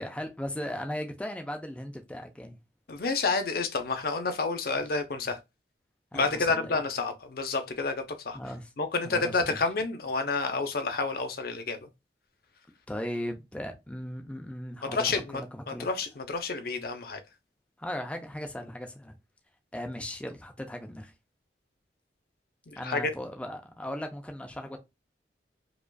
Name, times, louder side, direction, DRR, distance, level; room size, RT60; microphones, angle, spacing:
voice 1, 0.0-2.6 6.1-6.8 8.3-8.7 9.0-9.6 12.9-15.9 17.8-19.2 19.7-21.1 22.8-24.8, left 1 dB, 5° left, 0.4 m, -37 dB
voice 2, 2.9-5.4 6.1-8.4 8.8-11.9 14.8-15.4 15.7-17.2 22.7-23.1, left 4 dB, 55° left, 0.7 m, -29 dB
4.9 x 2.4 x 2.2 m
head